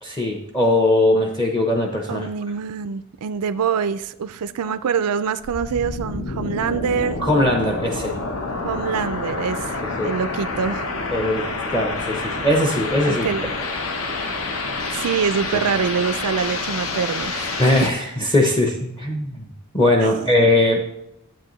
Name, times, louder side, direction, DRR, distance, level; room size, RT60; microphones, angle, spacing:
voice 1, 0.0-2.3 7.2-8.2 9.8-10.1 11.1-13.3 17.6-19.5 19.7-20.8, left 1 dB, 20° left, 1 dB, 0.7 m, -20 dB
voice 2, 2.1-7.2 8.6-10.9 13.0-13.6 14.9-17.9 20.0-20.1, right 6 dB, 85° right, 12 dB, 0.4 m, -25 dB
sound 1, 5.4-17.9, left 3 dB, 65° left, 1.0 m, -28 dB
12.0 x 8.1 x 3.1 m, 0.87 s
head